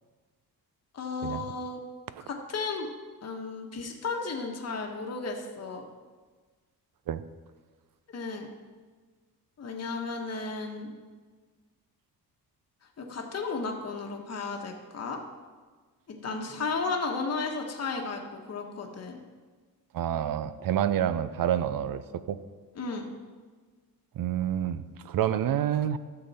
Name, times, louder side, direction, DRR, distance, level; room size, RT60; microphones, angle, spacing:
voice 1, 0.9-1.8 2.3-2.9 3.2-5.8 8.1-8.5 9.6-10.9 13.0-15.2 16.1-19.2 22.7-23.0, left 4 dB, 40° left, 2 dB, 1.2 m, -34 dB
voice 2, 19.9-22.4 24.1-26.0, right 10 dB, 60° right, 13 dB, 0.6 m, -28 dB
12.5 x 6.9 x 4.2 m, 1.4 s
cardioid pair, 115°, 38 cm